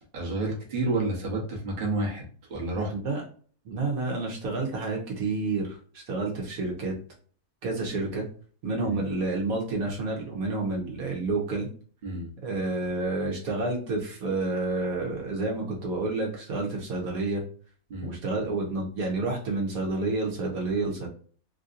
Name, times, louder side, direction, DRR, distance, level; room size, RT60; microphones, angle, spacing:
voice 1, 0.1-2.2 2.5-2.9 8.8-9.0 12.0-12.3 17.9-18.2, right 2 dB, 35° right, -3 dB, 1.0 m, -30 dB
voice 2, 2.9-3.2 3.6-5.8 6.1-6.9 7.6-8.2 8.6-11.7 12.4-17.4 18.0-21.1, right 3 dB, 70° right, 0 dB, 1.3 m, -29 dB
3.3 x 2.7 x 2.5 m, 0.44 s
omnidirectional pair, 1.6 m